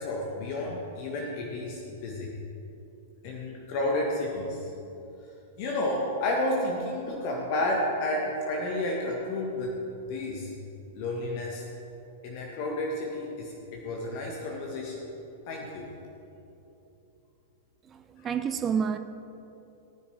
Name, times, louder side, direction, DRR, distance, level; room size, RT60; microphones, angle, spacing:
voice 1, 0.0-2.3 3.2-4.7 5.6-9.8 10.1-10.5 10.9-11.6 12.2-15.0 15.5-15.9, left 1 dB, 45° left, -1 dB, 1.6 m, -31 dB
voice 2, 17.8-19.0, right 7 dB, 20° right, 9 dB, 0.5 m, -29 dB
18.0 x 10.5 x 3.6 m, 2.9 s
figure-of-eight pair, 100°, 0 cm